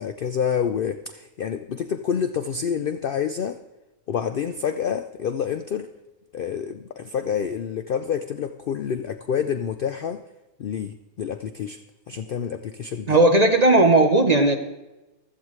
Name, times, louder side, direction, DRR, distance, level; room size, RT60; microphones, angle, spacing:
voice 1, 0.0-3.6 4.1-5.9 6.3-10.2 10.6-11.8 12.1-13.2, left 7 dB, 85° left, 9 dB, 0.4 m, -28 dB
voice 2, 13.1-14.5, right 2 dB, 35° right, 6 dB, 0.7 m, -16 dB
15.0 x 13.5 x 3.2 m, 1.1 s
omnidirectional pair, 1.5 m